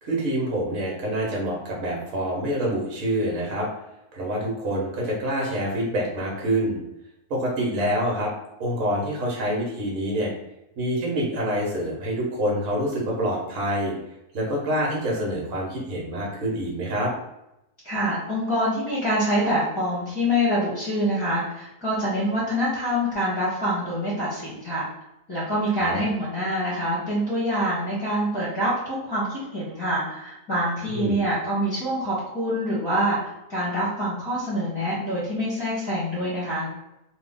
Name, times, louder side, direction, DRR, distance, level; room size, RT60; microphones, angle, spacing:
voice 1, 0.0-3.7 4.1-6.8 7.3-8.3 8.6-10.3 10.8-13.9 14.3-17.1 25.8-26.0 30.9-31.2, right 1 dB, 55° right, -3 dB, 1.3 m, -26 dB
voice 2, 17.8-24.9 25.3-33.2 33.5-36.7, equal, 20° left, -9 dB, 1.2 m, -25 dB
3.1 x 2.6 x 3.6 m, 0.89 s
omnidirectional pair, 1.7 m